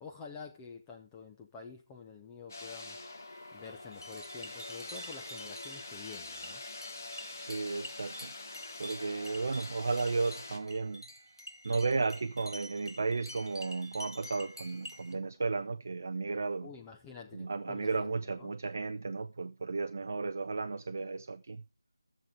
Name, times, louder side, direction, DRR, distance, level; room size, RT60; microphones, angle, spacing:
voice 1, 0.0-3.0 3.5-6.6 16.6-18.5, left 5 dB, 10° left, 0.6 m, -48 dB
sound 1, 2.5-10.6, left 3 dB, 40° left, 1.3 m, -45 dB
sound 2, 3.6-15.1, equal, 85° left, 2.1 m, -48 dB
voice 2, 7.4-8.3 8.8-11.0 11.6-16.7 17.3-21.6, right 4 dB, 35° right, 0.5 m, -34 dB
13.5 x 7.3 x 3.5 m
figure-of-eight pair, 160°, 2 cm